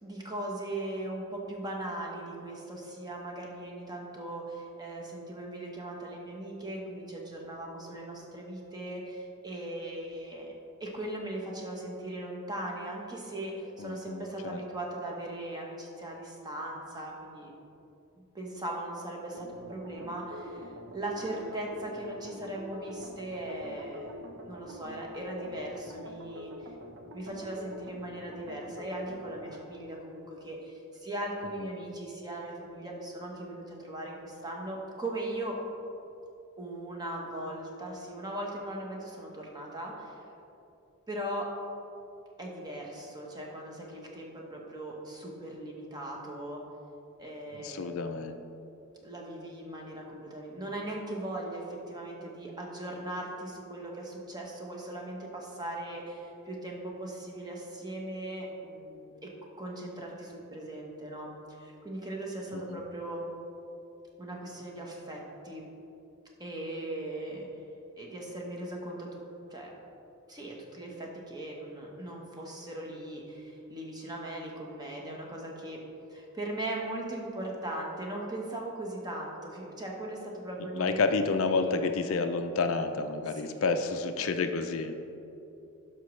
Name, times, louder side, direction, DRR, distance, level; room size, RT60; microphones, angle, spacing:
voice 1, 0.0-10.5 10.8-17.5 18.3-24.2 24.4-26.7 27.1-35.6 36.6-40.2 41.1-41.5 42.4-46.6 47.2-48.1 49.0-59.3 59.6-63.3 64.2-65.7 66.4-67.5 68.0-69.2 69.5-69.7 70.3-75.8 76.1-81.0 81.4-81.8 83.3-83.6, right 1 dB, 20° right, -1 dB, 1.1 m, -39 dB
voice 2, 13.8-14.6 47.5-48.4 62.5-62.8 80.7-84.9, left 4 dB, 70° left, 7 dB, 0.5 m, -30 dB
sound 1, 19.3-29.6, equal, 60° right, 0.7 m, -45 dB
11.0 x 6.1 x 3.2 m, 2.8 s
head